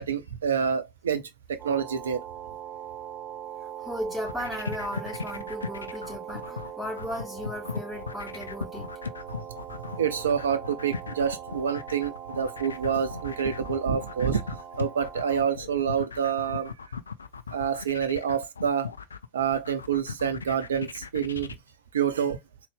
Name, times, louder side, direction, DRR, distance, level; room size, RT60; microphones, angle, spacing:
voice 1, 0.0-2.2 10.0-14.4 14.8-16.7 17.5-18.9 19.3-21.5 21.9-22.4, right 7 dB, 65° right, 0.6 m, -27 dB
sound 1, 1.6-15.4, right 9 dB, 25° right, 0.8 m, -41 dB
voice 2, 3.8-8.9, equal, ahead, 2.5 m, -36 dB
sound 2, 4.1-21.5, left 5 dB, 75° left, 0.4 m, -38 dB
4.0 x 2.4 x 3.4 m
figure-of-eight pair, 90°, 0 cm